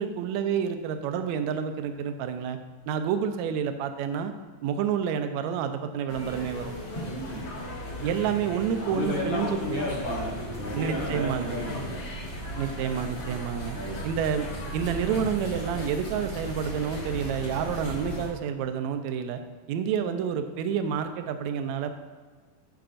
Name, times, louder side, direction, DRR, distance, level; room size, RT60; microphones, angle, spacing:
voice 1, 0.0-2.6 2.9-4.3 4.6-6.7 8.0-9.9 10.7-11.6 12.6-13.8 14.0-14.5 14.7-19.4 19.7-21.9, right 7 dB, 80° right, 8 dB, 1.7 m, -29 dB
sound 1, 6.1-18.3, equal, 45° left, 2.0 m, -36 dB
voice 2, 7.0-7.6 8.9-12.0 13.7-14.2, left 1 dB, 60° left, -5 dB, 2.9 m, -34 dB
13.0 x 5.8 x 2.5 m, 1.5 s
omnidirectional pair, 3.6 m